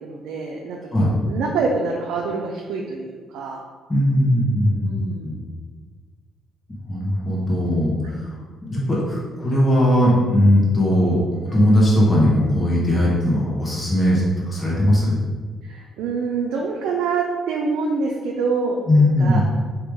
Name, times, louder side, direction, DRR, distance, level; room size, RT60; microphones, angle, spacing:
voice 1, 0.0-3.6 4.8-5.3 8.0-8.1 15.6-19.4, right 4 dB, 90° right, 0 dB, 0.4 m, -26 dB
voice 2, 3.9-5.0 5.2-5.4 6.9-8.3 8.7-15.2 18.9-19.4, left 1 dB, 25° left, -6 dB, 1.3 m, -19 dB
3.6 x 3.0 x 4.7 m, 1.5 s
cardioid pair, 90°, 0 cm